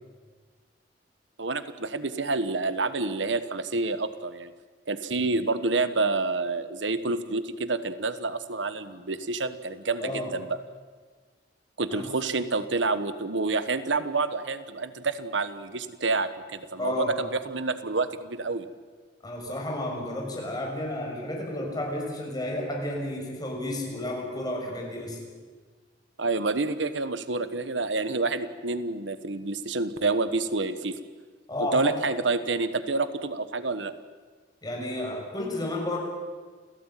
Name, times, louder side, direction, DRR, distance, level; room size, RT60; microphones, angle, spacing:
voice 1, 1.4-4.5 4.9-10.6 11.8-18.7 26.2-31.0 31.7-33.9, right 3 dB, 85° right, 12 dB, 1.3 m, -28 dB
voice 2, 16.8-17.1 19.2-25.2 31.5-32.0 34.6-36.0, left 1 dB, 20° left, 0 dB, 6.8 m, -32 dB
28.5 x 17.0 x 9.2 m, 1.5 s
head